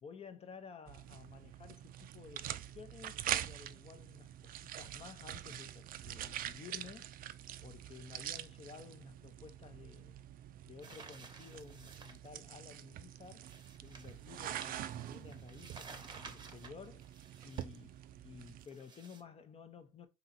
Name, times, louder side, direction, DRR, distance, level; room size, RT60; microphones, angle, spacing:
voice 1, 0.0-7.4 7.6-10.2 10.6-13.5 13.8-17.1 17.4-18.0 18.2-20.1, left 5 dB, 35° left, 0.7 m, -53 dB
sound 1, 0.9-18.7, right 12 dB, 55° right, 0.4 m, -45 dB
sound 2, 10.8-12.3 13.2-17.8 18.4-19.2, right 4 dB, 25° right, 0.8 m, -54 dB
3.9 x 2.9 x 4.0 m
cardioid pair, 110°, 17 cm